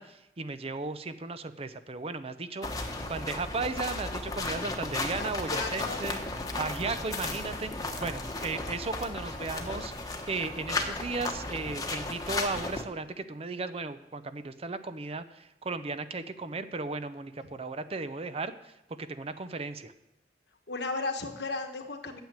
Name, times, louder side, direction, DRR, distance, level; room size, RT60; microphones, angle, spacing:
voice 1, 0.0-6.2 6.6-19.9, right 3 dB, 35° right, 11 dB, 0.6 m, -36 dB
sound 1, 2.6-12.8, left 2 dB, 20° left, 1.1 m, -35 dB
voice 2, 5.2-6.0 20.7-22.2, left 3 dB, 75° left, 5 dB, 1.3 m, -35 dB
9.1 x 7.3 x 8.8 m, 0.87 s
head